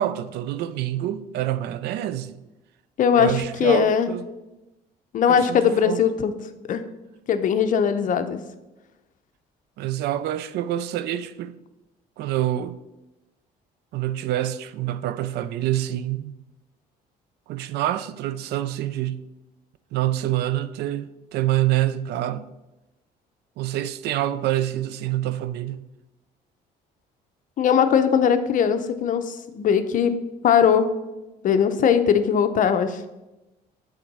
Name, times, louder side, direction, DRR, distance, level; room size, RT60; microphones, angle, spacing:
voice 1, 0.0-2.4 3.2-4.3 5.3-6.0 9.8-11.6 12.2-12.8 13.9-16.4 17.5-19.3 19.9-22.5 23.6-25.8, right 13 dB, 75° right, 0.4 m, -26 dB
voice 2, 3.0-4.1 5.1-6.3 6.7-6.8 7.3-8.4 27.6-30.2 30.4-30.9 31.4-33.0, left 7 dB, 50° left, 0.6 m, -20 dB
7.5 x 3.7 x 5.3 m
cardioid pair, 110°, 17 cm